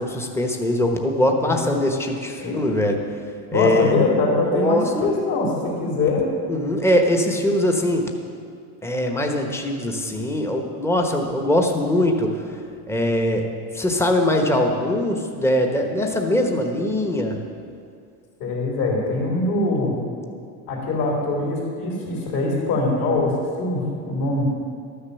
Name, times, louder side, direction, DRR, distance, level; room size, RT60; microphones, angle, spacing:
voice 1, 0.0-3.0 3.5-3.9 4.4-4.8 6.5-8.0 8.8-12.4 12.9-13.4 13.7-17.4, left 1 dB, 5° left, 2 dB, 1.2 m, -22 dB
voice 2, 3.5-6.3 18.4-20.0 20.7-24.5, left 2 dB, 50° left, -3 dB, 3.6 m, -23 dB
12.5 x 6.8 x 7.0 m, 2.3 s
supercardioid pair, 110°, 46 cm